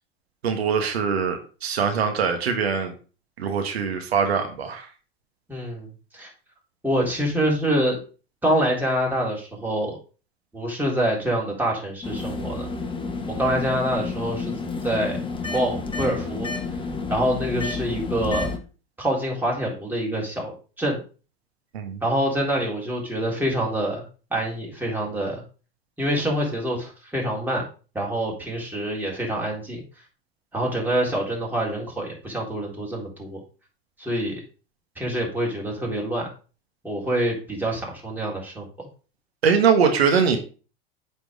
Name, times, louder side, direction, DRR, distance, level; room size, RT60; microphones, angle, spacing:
voice 1, 0.4-2.9 3.4-4.9 21.7-22.0 39.4-40.4, right 6 dB, 85° right, 5 dB, 1.6 m, -22 dB
voice 2, 5.5-5.9 6.1-6.3 6.8-8.0 8.4-10.0 10.5-12.7 13.4-14.5 14.8-15.2 15.5-16.5 17.1-18.5 19.0-21.0 22.0-24.0 24.3-25.4 26.0-27.7 27.9-29.8 30.5-33.4 34.0-34.4 35.0-36.3 36.8-38.9, right 1 dB, 5° right, -3 dB, 3.7 m, -26 dB
sound 1, 12.0-18.6, left 3 dB, 15° left, 1.3 m, -30 dB
8.2 x 4.5 x 5.1 m, 0.36 s
hypercardioid pair, 95°, 31 cm